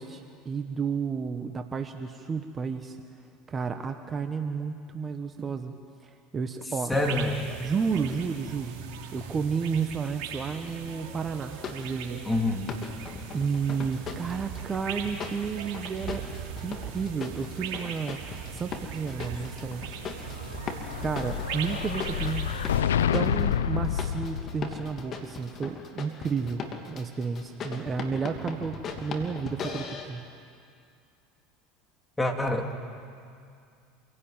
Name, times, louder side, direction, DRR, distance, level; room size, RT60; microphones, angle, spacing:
voice 1, 0.0-3.0 3.5-5.7 6.0-6.9 7.6-8.7 9.1-12.2 13.3-16.2 16.6-18.2 18.5-20.0 21.0-22.6 23.1-26.6 26.9-30.2, right 5 dB, 30° right, 7 dB, 1.3 m, -32 dB
voice 2, 6.9-7.5 12.2-12.7 32.2-32.7, left 1 dB, 10° left, 3 dB, 3.0 m, -26 dB
sound 1, 6.9-22.8, right 6 dB, 65° right, 3.1 m, -39 dB
sound 2, 11.4-11.8 12.7-14.7 15.0-30.1, left 5 dB, 40° left, 2.9 m, -39 dB
Explosion, 20.3-24.9, left 9 dB, 85° left, 0.5 m, -29 dB
27.5 x 17.0 x 9.1 m, 2.3 s
hypercardioid pair, 80°, 0 cm